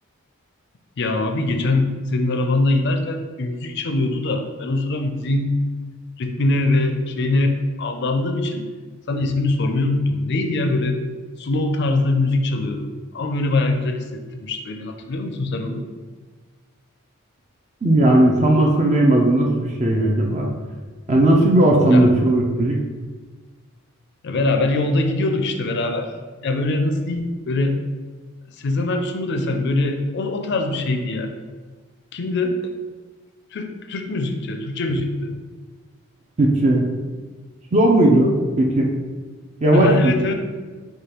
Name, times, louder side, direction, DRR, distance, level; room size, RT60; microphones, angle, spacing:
voice 1, 1.0-5.5 6.2-8.6 9.1-11.0 11.4-15.9 21.9-22.1 24.2-26.1 26.4-27.8 28.6-31.3 32.1-32.6 33.5-35.4 39.7-40.3, left 2 dB, 50° left, 6 dB, 0.4 m, -22 dB
voice 2, 17.8-20.5 21.1-22.8 36.4-36.8 37.7-38.9 39.6-40.1, right 1 dB, 30° right, -1 dB, 0.5 m, -16 dB
5.0 x 2.3 x 4.3 m, 1.4 s
head